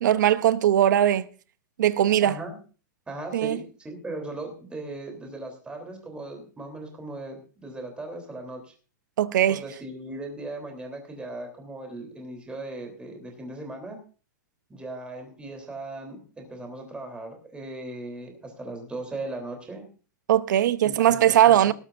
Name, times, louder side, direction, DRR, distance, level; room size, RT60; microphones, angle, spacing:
voice 1, 0.0-1.3 1.8-2.3 3.3-3.6 9.2-9.6 20.3-21.7, right 11 dB, 70° right, 0.8 m, -20 dB
voice 2, 2.2-2.6 3.1-8.7 9.5-14.0 14.7-19.9 20.8-21.7, right 2 dB, 10° right, 3.3 m, -38 dB
19.0 x 13.0 x 2.6 m
hypercardioid pair, 140°, 10 cm